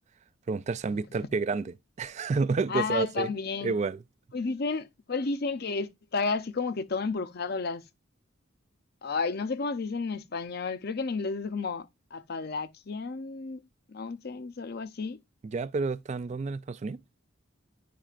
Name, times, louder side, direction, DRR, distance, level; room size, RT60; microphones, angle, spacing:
voice 1, 0.5-3.3 3.6-4.0 15.4-17.0, right 4 dB, 35° right, 0.3 m, -30 dB
voice 2, 2.7-3.8 4.3-7.8 9.0-11.9 12.1-13.6 13.9-15.2, left 4 dB, 50° left, 0.6 m, -32 dB
10.0 x 4.8 x 2.4 m
head